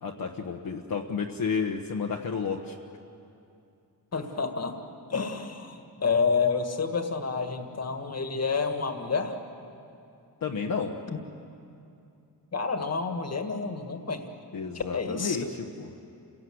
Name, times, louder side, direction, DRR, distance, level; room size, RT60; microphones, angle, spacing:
voice 1, 0.0-2.8 10.4-11.0 14.5-15.9, left 5 dB, 65° left, 1 dB, 1.2 m, -31 dB
voice 2, 4.1-4.8 5.1-9.4 12.5-14.2 14.7-15.5, left 5 dB, 40° left, 6 dB, 1.8 m, -29 dB
29.0 x 17.5 x 7.9 m, 2.6 s
wide cardioid pair, 145°, 38 cm